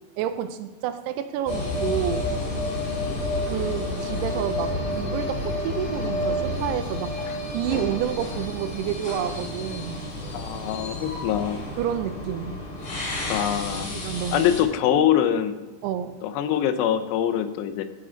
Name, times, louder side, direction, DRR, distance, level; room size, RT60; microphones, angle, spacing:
voice 1, 0.2-2.3 3.4-7.1 7.5-10.1 11.8-12.6 14.0-14.4 15.8-16.2, right 10 dB, 80° right, 10 dB, 2.5 m, -29 dB
sound 1, 1.5-14.6, left 1 dB, 55° left, 3.3 m, -30 dB
voice 2, 10.3-11.6 13.3-13.9 14.3-15.6 16.2-17.8, left 10 dB, 85° left, 10 dB, 2.8 m, -24 dB
15.0 x 6.6 x 3.9 m, 1.2 s
omnidirectional pair, 4.9 m